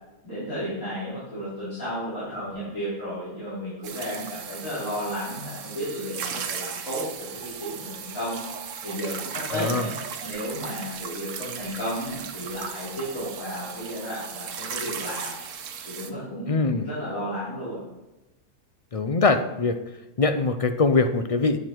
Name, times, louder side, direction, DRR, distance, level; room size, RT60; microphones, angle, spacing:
voice 1, 0.2-8.4 8.8-9.9 10.2-15.4 15.9-17.8, equal, 85° left, -12 dB, 4.5 m, -33 dB
sound 1, 3.8-16.1, right 7 dB, 70° right, 1.2 m, -36 dB
voice 2, 9.5-9.9 16.5-16.9 18.9-19.8 20.2-21.6, left 3 dB, 45° left, 8 dB, 0.4 m, -22 dB
10.0 x 8.1 x 4.5 m, 1.0 s
omnidirectional pair, 1.4 m